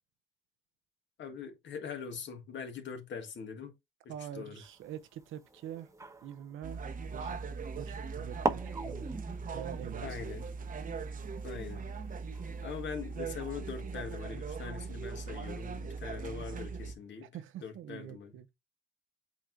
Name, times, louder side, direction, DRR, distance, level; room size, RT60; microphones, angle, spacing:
voice 1, 1.2-3.7 4.0-4.6 10.0-10.5 11.4-11.8 12.6-17.3 17.6-18.3, left 6 dB, 65° left, 1.8 m, -42 dB
voice 2, 4.1-5.9 6.2-6.8 7.1-7.4 7.8-9.2 9.5-10.3 17.2-18.5, right 11 dB, 80° right, 0.9 m, -45 dB
sound 1, 4.6-7.5 8.1-8.2 8.4-13.0, right 2 dB, 15° right, 1.0 m, -41 dB
sound 2, 6.6-17.0, right 5 dB, 45° right, 1.0 m, -40 dB
8.4 x 3.1 x 3.8 m
cardioid pair, 90°, 20 cm